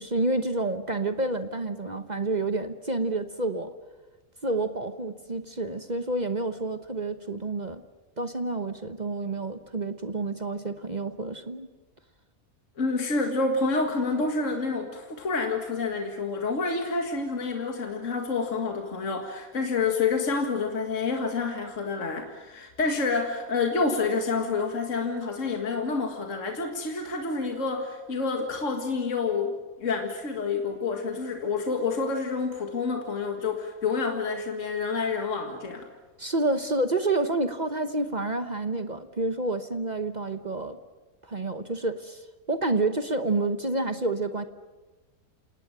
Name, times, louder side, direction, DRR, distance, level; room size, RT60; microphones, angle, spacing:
voice 1, 0.0-3.7 4.4-7.8 8.2-11.7 36.2-40.8 41.2-44.4, right 2 dB, 30° right, 9 dB, 1.1 m, -29 dB
voice 2, 12.8-35.9, left 4 dB, 55° left, 4 dB, 2.3 m, -28 dB
28.0 x 19.0 x 8.9 m, 1.2 s
omnidirectional pair, 1.6 m